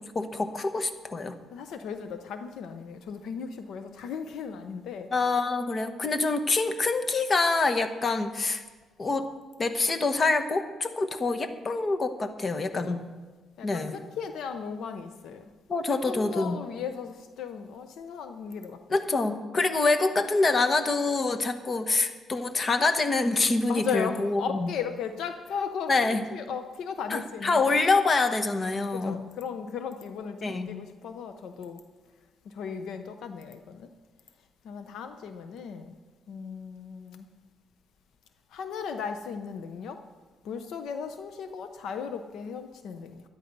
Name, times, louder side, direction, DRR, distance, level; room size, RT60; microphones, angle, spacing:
voice 1, 0.1-1.4 5.1-8.6 9.0-9.3 9.6-13.0 13.6-14.0 15.7-16.6 18.9-24.7 25.9-26.2 27.1-29.2 30.4-30.7, left 3 dB, 35° left, 9 dB, 1.2 m, -26 dB
voice 2, 1.5-5.1 12.7-12.8 13.6-15.4 15.9-18.8 23.7-27.6 28.9-31.8 32.4-33.9 34.6-35.9 36.3-37.3 38.5-40.0 40.4-43.2, left 6 dB, 75° left, 8 dB, 0.8 m, -36 dB
12.5 x 11.0 x 5.4 m, 1.3 s
cardioid pair, 90°, 0 cm